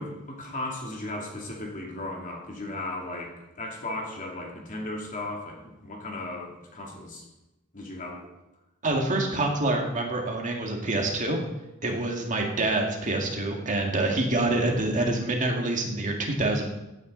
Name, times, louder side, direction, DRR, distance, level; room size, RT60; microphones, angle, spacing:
voice 1, 0.0-7.2 7.7-8.2, left 2 dB, 40° left, -1 dB, 2.6 m, -36 dB
voice 2, 8.8-11.4 11.8-16.7, right 2 dB, 35° right, 1 dB, 1.9 m, -26 dB
15.5 x 9.4 x 3.9 m, 0.96 s
head